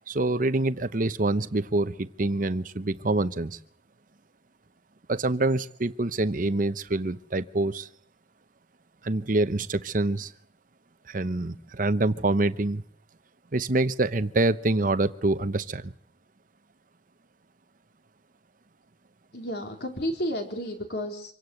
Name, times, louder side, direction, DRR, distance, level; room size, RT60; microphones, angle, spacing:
voice 1, 0.1-3.6 5.1-7.9 9.0-10.3 11.1-12.8 13.5-15.9, right 2 dB, 50° right, 13 dB, 0.9 m, -26 dB
voice 2, 19.3-21.3, equal, 60° left, 3 dB, 4.1 m, -32 dB
26.0 x 17.0 x 7.9 m, 0.63 s
head